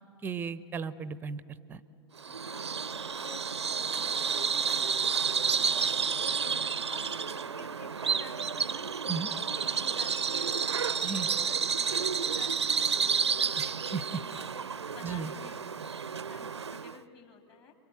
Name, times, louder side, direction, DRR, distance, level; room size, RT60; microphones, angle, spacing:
voice 1, 0.2-1.4 1.7-1.8 9.1-9.3 11.0-11.3 13.6-14.2 15.0-15.3, right 6 dB, 15° right, 17 dB, 0.7 m, -35 dB
Bird vocalization bird call bird song, 2.2-17.0, right 6 dB, 75° right, 0.6 m, -30 dB
voice 2, 2.3-5.9 6.4-10.9 11.4-16.0 16.2-17.7, left 6 dB, 30° left, 4 dB, 3.2 m, -52 dB
29.5 x 23.0 x 8.1 m, 2.8 s
figure-of-eight pair, 105°, 14 cm